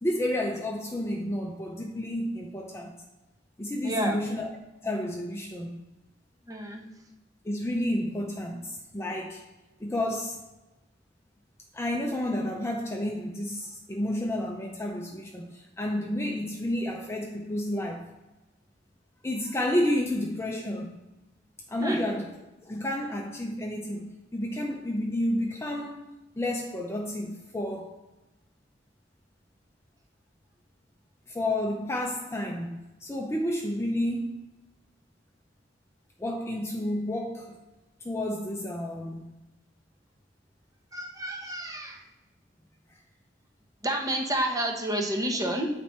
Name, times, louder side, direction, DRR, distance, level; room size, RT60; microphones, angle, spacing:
voice 1, 0.0-3.0 3.6-4.5 4.8-5.8 7.4-9.4 9.8-10.4 11.7-18.1 19.2-20.9 21.7-22.3 22.6-26.0 26.4-27.9 31.3-34.4 36.2-37.6 38.0-39.3, left 1 dB, 15° left, 0 dB, 0.6 m, -30 dB
voice 2, 3.8-4.2 6.5-6.8 21.8-22.0 40.9-42.0 43.8-45.7, right 1 dB, 20° right, 1 dB, 1.0 m, -29 dB
8.9 x 4.2 x 4.4 m, 1.0 s
head